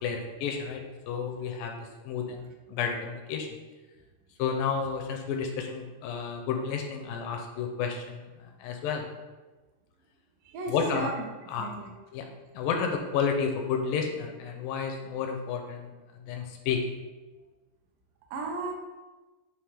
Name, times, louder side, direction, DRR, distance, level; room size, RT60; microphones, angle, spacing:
voice 1, 0.0-3.5 4.4-9.1 10.7-11.1 11.5-11.7 12.1-12.3 12.5-15.9 16.3-16.8, left 6 dB, 80° left, 3 dB, 2.1 m, -31 dB
voice 2, 10.4-11.3 11.6-11.9 18.3-18.7, right 3 dB, 75° right, 1 dB, 2.3 m, -34 dB
9.4 x 3.2 x 3.3 m, 1.2 s
omnidirectional pair, 4.3 m